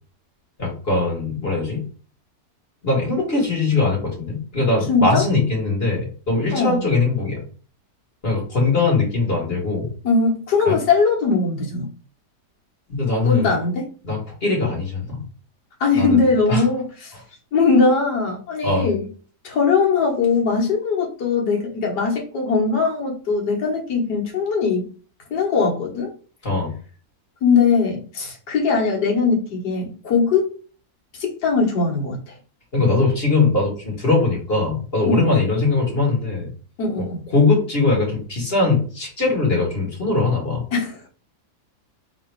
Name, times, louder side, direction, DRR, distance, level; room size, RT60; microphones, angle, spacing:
voice 1, 0.6-1.8 2.8-7.4 8.2-9.9 10.7-10.8 12.9-13.5 14.0-15.2 15.9-16.2 16.5-16.6 18.6-18.9 26.4-26.7 32.7-36.5 37.3-40.6, left 3 dB, 35° left, -2 dB, 1.9 m, -21 dB
voice 2, 4.9-5.3 6.5-6.9 10.0-11.9 13.2-13.9 15.8-17.2 17.5-19.1 19.4-24.9 25.3-26.1 27.4-30.5 31.2-32.3 35.0-35.4 36.8-37.2 40.7-41.1, left 4 dB, 85° left, -1 dB, 2.0 m, -20 dB
3.7 x 3.0 x 4.5 m, 0.39 s
omnidirectional pair, 1.8 m